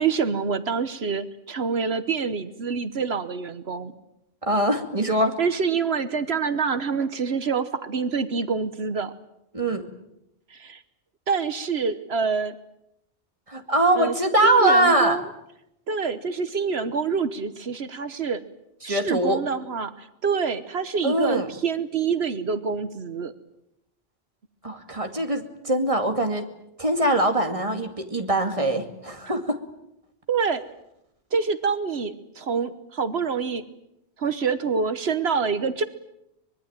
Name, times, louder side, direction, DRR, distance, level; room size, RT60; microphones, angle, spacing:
voice 1, 0.0-3.9 5.4-9.1 10.5-10.8 11.3-12.5 13.9-14.1 14.4-15.3 15.9-18.4 18.8-23.3 30.3-30.6 31.3-33.6 34.2-35.8, right 5 dB, 70° right, 12 dB, 1.4 m, -26 dB
voice 2, 4.4-5.4 9.5-9.9 13.5-15.2 18.8-19.4 21.0-21.5 24.6-26.5 26.8-29.6, right 1 dB, 30° right, 5 dB, 2.5 m, -22 dB
24.5 x 21.5 x 8.9 m, 0.84 s
omnidirectional pair, 1.1 m